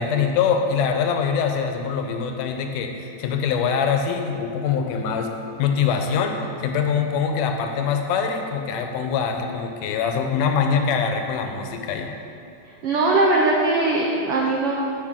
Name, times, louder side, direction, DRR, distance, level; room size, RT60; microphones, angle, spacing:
voice 1, 0.0-5.3 5.6-12.1, left 6 dB, 80° left, 4 dB, 2.2 m, -23 dB
voice 2, 12.8-14.7, right 2 dB, 90° right, -2 dB, 1.2 m, -20 dB
13.5 x 5.9 x 3.6 m, 2.6 s
omnidirectional pair, 3.7 m